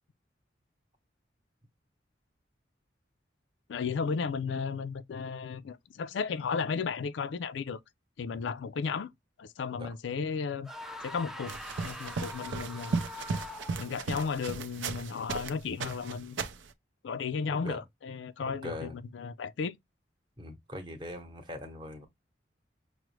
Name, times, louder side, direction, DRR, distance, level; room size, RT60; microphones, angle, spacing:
voice 1, 3.7-7.8 8.2-9.1 9.4-10.7 11.0-13.0 13.8-16.4 17.0-19.8, left 5 dB, 80° left, 0.4 m, -34 dB
sound 1, 10.6-14.0, left 1 dB, ahead, 0.4 m, -43 dB
sound 2, 11.5-15.5 15.8-16.7, right 4 dB, 85° right, 0.5 m, -35 dB
voice 2, 18.6-19.0 20.4-22.1, left 1 dB, 25° right, 0.9 m, -41 dB
6.0 x 2.1 x 3.1 m
head